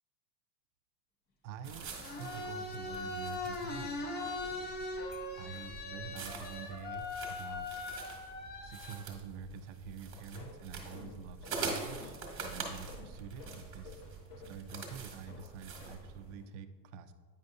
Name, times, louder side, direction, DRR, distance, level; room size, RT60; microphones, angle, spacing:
voice 1, 1.4-4.7 5.4-7.8 8.6-12.1 12.4-14.0 14.3-17.1, right 6 dB, 50° right, 10 dB, 0.5 m, -47 dB
sound 1, 1.6-8.9, left 3 dB, 20° left, 0.5 m, -40 dB
sound 2, 1.6-16.4, right 4 dB, 25° right, 1.1 m, -45 dB
sound 3, 9.9-16.5, left 3 dB, 80° left, 1.1 m, -54 dB
8.9 x 5.3 x 2.6 m, 1.5 s
supercardioid pair, 140°, 48 cm